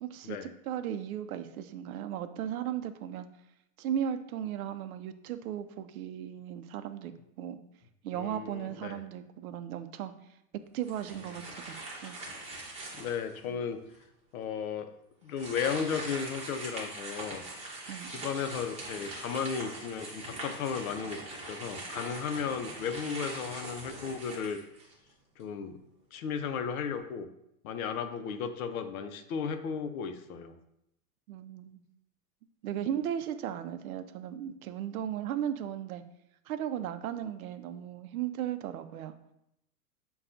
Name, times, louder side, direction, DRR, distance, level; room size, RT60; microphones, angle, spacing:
voice 1, 0.0-3.3 3.8-7.1 7.4-7.6 8.0-10.1 10.7-11.7 12.0-12.2 13.5-13.6 17.9-18.1 31.3-31.8 32.6-36.0 36.5-39.1, right 10 dB, 65° right, 10 dB, 0.5 m, -36 dB
voice 2, 8.1-9.0 12.9-13.8 14.3-14.9 15.2-17.4 18.1-21.2 21.5-24.6 25.4-25.8 26.1-27.3 27.6-30.6, left 6 dB, 65° left, 9 dB, 0.6 m, -35 dB
sound 1, 10.8-13.4 13.9-14.0 15.3-25.1, right 2 dB, 15° right, 0.9 m, -42 dB
6.8 x 2.3 x 2.6 m, 0.80 s
hypercardioid pair, 130°, 46 cm